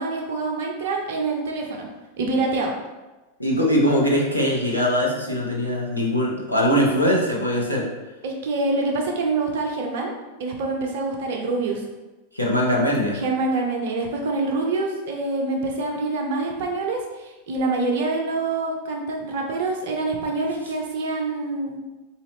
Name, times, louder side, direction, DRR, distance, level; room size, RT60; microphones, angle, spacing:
voice 1, 0.0-1.9 2.2-2.7 8.2-10.1 10.4-11.8 13.1-21.8, right 3 dB, 55° right, 1 dB, 0.7 m, -26 dB
voice 2, 3.4-7.9 12.3-13.2, equal, 85° left, -3 dB, 0.8 m, -21 dB
4.0 x 2.8 x 3.1 m, 1.1 s
figure-of-eight pair, 90°, 0 cm